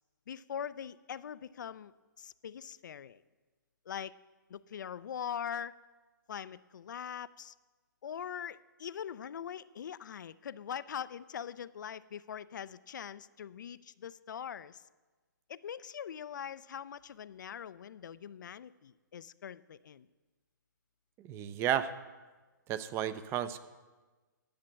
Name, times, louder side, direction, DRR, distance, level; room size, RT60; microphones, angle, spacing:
voice 1, 0.3-1.9 2.2-3.2 3.9-4.1 4.5-5.8 6.3-7.5 8.0-14.8 15.5-20.1, left 8 dB, 65° left, 17 dB, 0.4 m, -42 dB
voice 2, 21.2-21.9 22.7-23.6, right 10 dB, 25° right, 13 dB, 0.5 m, -33 dB
10.5 x 7.4 x 7.4 m, 1.3 s
figure-of-eight pair, 125°, 11 cm